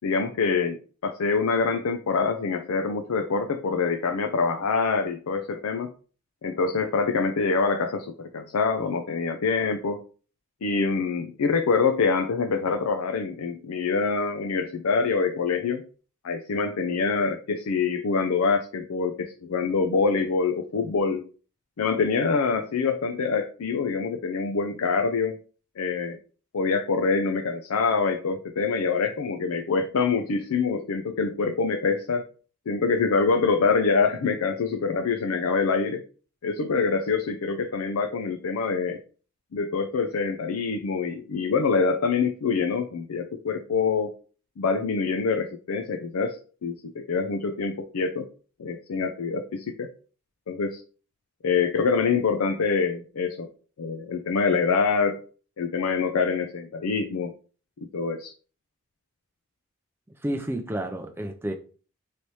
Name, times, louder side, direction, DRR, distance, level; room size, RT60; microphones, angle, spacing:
voice 1, 0.0-5.9 6.4-10.0 10.6-15.9 16.2-21.3 21.8-25.4 25.8-26.2 26.5-32.2 32.7-36.0 36.4-39.0 39.5-44.1 44.6-48.3 48.6-49.9 50.5-50.8 51.4-53.5 53.8-55.2 55.6-57.3 57.9-58.3, left 4 dB, 80° left, 0.5 m, -25 dB
voice 2, 60.2-61.5, right 1 dB, 10° right, 0.4 m, -30 dB
3.2 x 2.8 x 4.5 m
head